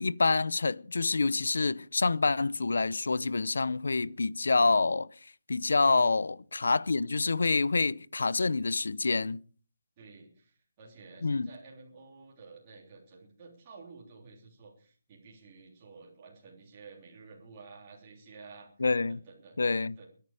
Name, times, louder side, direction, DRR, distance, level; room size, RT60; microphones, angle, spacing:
voice 1, 0.0-5.1 5.5-9.4 11.2-11.5 18.8-19.2 19.6-19.9, left 3 dB, 70° left, 0.7 m, -27 dB
voice 2, 10.0-18.7 19.1-19.6 20.0-20.1, right 4 dB, 20° right, 3.5 m, -52 dB
22.0 x 10.5 x 5.0 m
hypercardioid pair, 180°, 0 cm